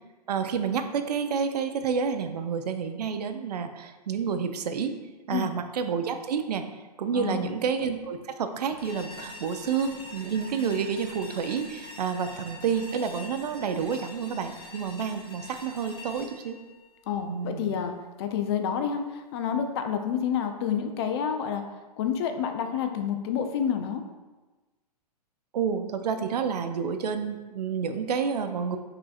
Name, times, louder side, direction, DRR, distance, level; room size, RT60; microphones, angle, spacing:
voice 1, 0.3-4.9 5.3-6.6 7.0-16.6 17.3-17.7 25.5-28.8, right 6 dB, 70° right, 8 dB, 0.4 m, -29 dB
voice 2, 7.1-7.6 17.1-21.6 22.0-24.0, left 8 dB, 40° left, 7 dB, 0.4 m, -29 dB
sound 1, 8.8-17.8, left 2 dB, 20° left, 0.8 m, -45 dB
4.7 x 2.8 x 2.4 m, 1.2 s
hypercardioid pair, 120°, 21 cm